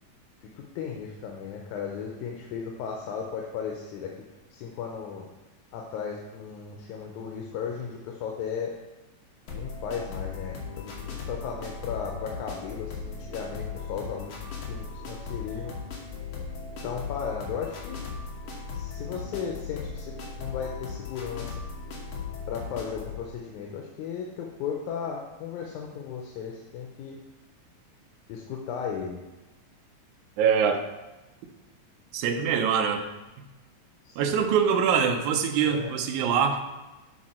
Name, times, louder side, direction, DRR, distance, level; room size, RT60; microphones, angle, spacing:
voice 1, 0.6-4.1 4.5-5.3 5.7-8.7 9.5-14.4 14.7-15.8 16.8-18.0 18.7-21.5 22.5-27.2 28.3-29.2 34.1-34.5 35.7-35.9, left 6 dB, 85° left, 1 dB, 2.2 m, -35 dB
sound 1, 9.5-23.2, left 5 dB, 60° left, 2.1 m, -37 dB
voice 2, 30.4-30.8 32.1-33.0 34.2-36.6, right 7 dB, 80° right, 4 dB, 2.1 m, -24 dB
8.4 x 4.7 x 4.3 m, 1.1 s
omnidirectional pair, 3.4 m